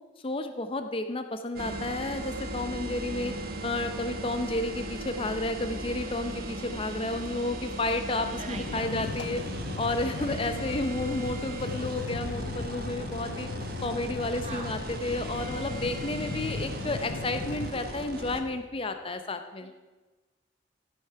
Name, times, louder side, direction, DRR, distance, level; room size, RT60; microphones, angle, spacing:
voice 1, 0.2-3.3 3.6-9.4 9.8-13.5 13.8-19.7, left 2 dB, 30° left, 8 dB, 0.6 m, -31 dB
sound 1, 1.6-18.4, right 1 dB, 55° right, 1.2 m, -37 dB
voice 2, 8.2-9.0 10.2-10.6 14.4-14.8 19.6-19.7, right 3 dB, 35° right, 4 dB, 1.5 m, -43 dB
sound 2, 8.5-17.7, left 4 dB, 85° left, 0.5 m, -38 dB
13.5 x 8.2 x 5.6 m, 1.3 s
head